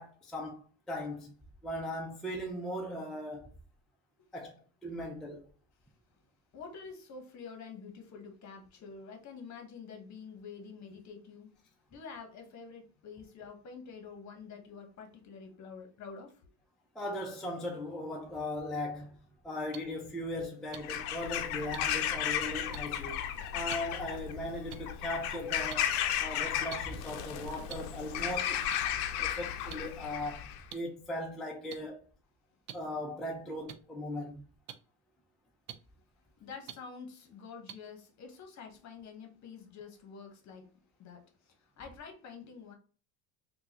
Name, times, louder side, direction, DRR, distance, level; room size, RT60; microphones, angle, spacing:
voice 1, 0.0-1.3 1.6-3.5 4.3-4.6 4.8-5.5 16.9-19.2 19.4-23.2 23.5-28.7 29.2-32.0 32.7-34.4, left 1 dB, ahead, 0.5 m, -38 dB
voice 2, 6.5-11.5 11.9-16.5 36.4-40.7 41.0-42.7, left 5 dB, 40° left, 1.1 m, -48 dB
sound 1, 19.7-19.8 20.7-20.8 21.7-21.8 22.7-22.8 23.7-23.8 24.7-24.8 25.7-25.8 26.7-26.8 27.7-27.8 28.7-28.8 29.7-29.8 30.7-30.8 31.7-31.8 32.7-32.8 33.7-33.8 34.7-34.8 35.7-35.8 36.7-36.8 37.7-37.8, right 11 dB, 80° right, 0.6 m, -43 dB
Bird vocalization bird call bird song / Crow, 20.7-30.6, left 10 dB, 85° left, 0.6 m, -34 dB
3.7 x 2.4 x 2.8 m
supercardioid pair, 110°, 43 cm